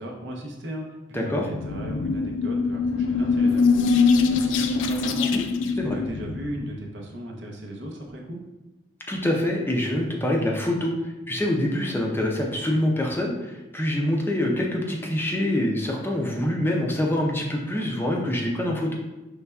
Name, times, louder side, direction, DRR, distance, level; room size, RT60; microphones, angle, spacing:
voice 1, 0.0-5.4 5.9-8.4, equal, 75° right, 0 dB, 0.8 m, -36 dB
voice 2, 1.1-1.5 5.3-5.4 5.8-6.0 9.1-19.0, left 1 dB, 10° left, -1 dB, 0.5 m, -25 dB
sound 1, 1.3-6.8, left 4 dB, 85° left, 0.4 m, -23 dB
5.5 x 3.3 x 2.3 m, 1.1 s
head